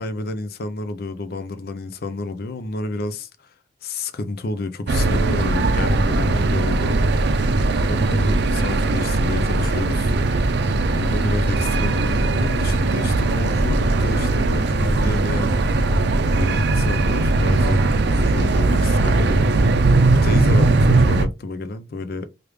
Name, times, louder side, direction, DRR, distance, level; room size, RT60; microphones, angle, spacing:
voice 1, 0.0-3.5 3.8-7.0 7.9-10.1 10.9-15.6 16.3-19.5 20.2-22.3, left 3 dB, 60° left, 0.5 m, -30 dB
sound 1, 4.9-21.3, right 2 dB, 65° right, 0.4 m, -19 dB
3.1 x 2.4 x 3.3 m
head